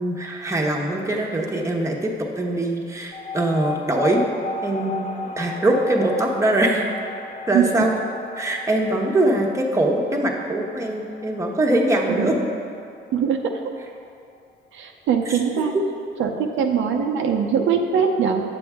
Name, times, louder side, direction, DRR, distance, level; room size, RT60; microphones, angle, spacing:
voice 1, 0.0-4.2 4.6-5.1 5.4-6.8 7.5-7.9 8.4-12.4 15.3-15.4, right 1 dB, 15° right, 0 dB, 1.0 m, -22 dB
sound 1, 3.1-14.0, left 3 dB, 40° left, 0.5 m, -35 dB
voice 2, 13.1-13.6 14.7-15.8 16.2-18.4, right 7 dB, 80° right, 3 dB, 0.6 m, -21 dB
9.0 x 6.9 x 3.6 m, 2.4 s
cardioid pair, 90°, 20 cm